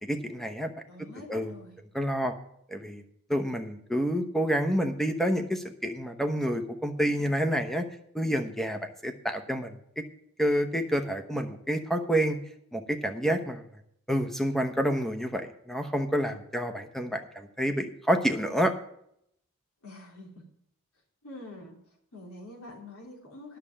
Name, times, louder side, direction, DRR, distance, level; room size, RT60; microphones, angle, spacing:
voice 1, 0.0-0.7 1.3-1.5 1.9-2.3 2.7-3.0 3.3-7.8 8.1-9.7 10.4-12.4 12.7-13.6 14.1-18.7, equal, ahead, 6 dB, 1.0 m, -28 dB
voice 2, 0.9-1.7 19.8-20.4 21.2-21.7 22.1-23.6, left 2 dB, 80° left, -1 dB, 3.5 m, -45 dB
11.0 x 6.7 x 7.4 m, 0.72 s
head